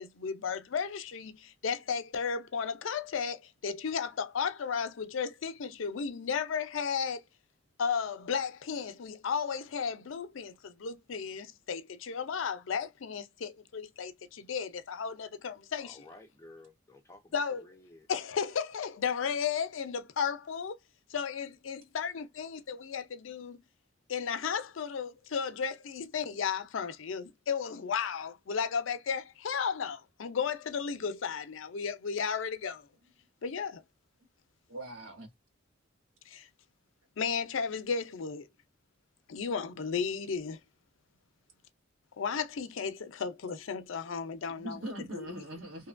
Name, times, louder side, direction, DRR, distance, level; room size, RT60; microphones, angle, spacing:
voice 1, 0.0-7.2 7.8-16.0 17.3-17.6 18.1-20.8 21.1-23.6 24.1-32.9 33.4-33.8 36.3-36.5 37.2-38.5 39.3-40.6 42.2-45.4, left 6 dB, 75° left, 0.5 m, -34 dB
voice 2, 15.8-18.1, left 2 dB, 15° left, 0.5 m, -54 dB
voice 3, 34.7-35.3 44.5-45.9, right 1 dB, 85° right, 1.3 m, -41 dB
2.8 x 2.2 x 2.4 m
head